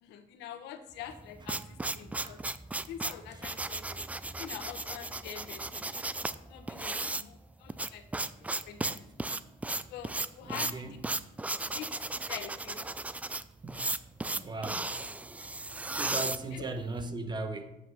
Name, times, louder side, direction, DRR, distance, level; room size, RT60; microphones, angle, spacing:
voice 1, 0.0-2.4 2.9-4.1 4.4-6.1 6.5-8.0 8.4-9.0 9.9-11.1 11.6-12.9 16.0-16.7, left 9 dB, 90° left, 8 dB, 1.1 m, -45 dB
sound 1, 1.1-17.0, right 2 dB, 10° right, 0.3 m, -35 dB
voice 2, 10.4-10.9 13.6-13.9 14.3-14.9 15.9-17.8, right 2 dB, 25° right, 7 dB, 1.0 m, -38 dB
7.9 x 5.9 x 6.1 m, 0.96 s
cardioid pair, 110°, 17 cm